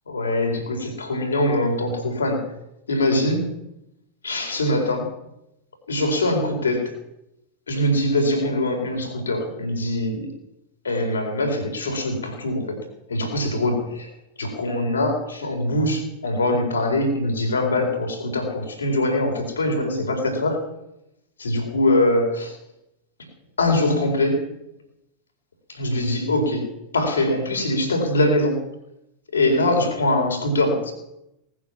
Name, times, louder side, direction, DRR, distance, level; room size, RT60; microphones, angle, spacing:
voice 1, 0.1-2.5 2.9-3.6 4.2-5.1 5.9-7.0 7.7-10.3 10.8-14.1 14.4-20.7 21.4-22.6 23.6-24.5 25.7-28.6 29.3-30.9, left 1 dB, 70° left, 3 dB, 4.4 m, -23 dB
19.0 x 9.7 x 7.3 m, 0.84 s
figure-of-eight pair, 90°, 0 cm